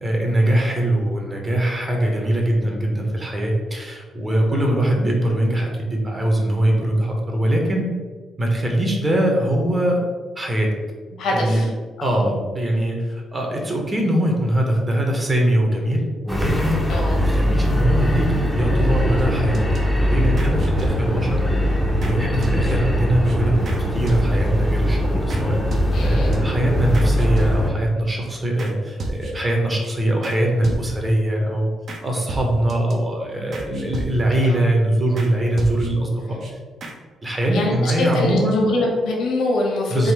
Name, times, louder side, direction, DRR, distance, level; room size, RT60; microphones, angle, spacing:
voice 1, 0.0-7.9 8.4-10.0 10.4-10.7 11.3-11.6 12.0-19.6 19.9-21.4 21.9-25.6 26.0-31.7 32.0-36.4 37.2-38.7 39.9-40.1, right 1 dB, 25° right, 0 dB, 0.9 m, -22 dB
voice 2, 11.2-11.7 12.0-12.2 16.9-17.2 25.9-26.4 34.4-34.6 37.5-40.1, left 1 dB, 80° left, -1 dB, 1.1 m, -24 dB
sound 1, 16.3-27.7, equal, 5° left, 0.6 m, -21 dB
sound 2, 19.2-19.8 20.4-21.3 22.0-22.2 22.4-23.0 23.3-23.4 23.7-23.8 24.1-24.6 25.3-25.4 25.7-26.4 26.9-27.9 28.6-28.7 29.0-29.5 29.8-29.9 30.2-30.4 30.6-31.2 31.9-32.0 32.3-32.9 33.5-34.5 35.2-35.3 35.6-36.1 36.4-36.5 36.8-37.0, right 2 dB, 50° right, 0.7 m, -31 dB
3.7 x 2.5 x 4.6 m, 1.4 s
cardioid pair, 120°, 0 cm